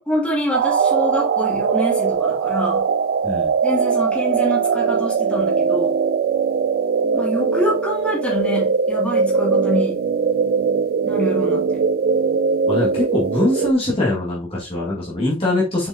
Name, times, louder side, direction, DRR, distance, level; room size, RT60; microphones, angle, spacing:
voice 1, 0.0-2.8 3.6-6.0 7.1-10.0 11.1-11.8, equal, 5° left, 2.6 m, -25 dB
sound 1, 0.5-13.7, right 5 dB, 50° right, 0.3 m, -20 dB
voice 2, 12.7-15.9, left 2 dB, 30° left, 1.9 m, -22 dB
6.9 x 5.2 x 2.8 m
head